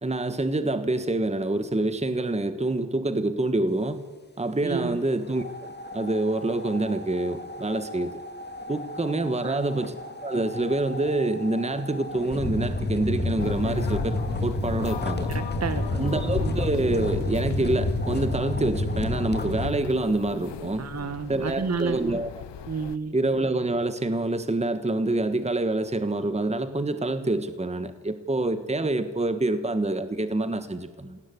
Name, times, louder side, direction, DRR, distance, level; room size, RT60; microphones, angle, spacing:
voice 1, 0.0-4.0 4.4-8.2 8.7-10.0 10.2-15.3 15.9-20.9 21.3-22.3 23.1-31.2, right 2 dB, 15° right, 10 dB, 1.4 m, -26 dB
voice 2, 4.6-5.0 9.4-9.7 15.3-16.6 20.8-22.2 22.7-23.1, right 5 dB, 35° right, 10 dB, 1.4 m, -31 dB
sound 1, 5.3-19.7, left 2 dB, 25° left, 2.4 m, -31 dB
sound 2, 13.4-23.0, left 10 dB, 75° left, 1.0 m, -38 dB
21.0 x 17.5 x 8.5 m, 1.4 s
cardioid pair, 95°, 43 cm